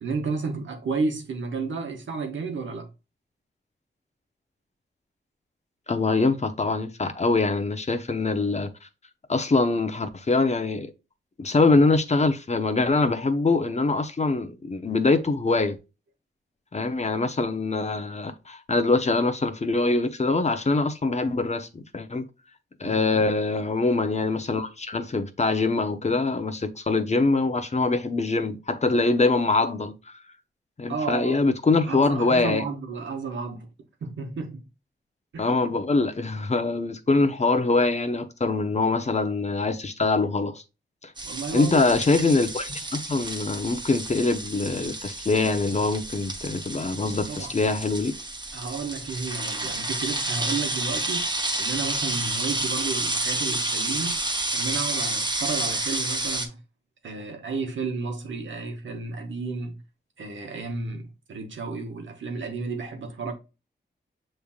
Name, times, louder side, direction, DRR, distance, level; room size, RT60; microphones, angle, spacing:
voice 1, 0.0-2.9 22.8-23.3 30.9-31.4 31.9-33.7 34.0-34.6 35.3-35.5 41.2-41.8 47.0-47.5 48.5-54.3 54.5-56.6 57.0-59.8 60.2-63.3, right 4 dB, 85° right, 1.0 m, -32 dB
voice 2, 5.9-8.7 9.3-10.9 11.4-15.8 16.7-22.3 22.8-30.0 30.8-32.6 35.4-40.6 41.0-41.1 41.5-48.1, left 3 dB, 35° left, 0.7 m, -24 dB
sound 1, 41.2-56.5, right 2 dB, 25° right, 0.9 m, -30 dB
6.9 x 3.3 x 2.3 m
cardioid pair, 65°, 19 cm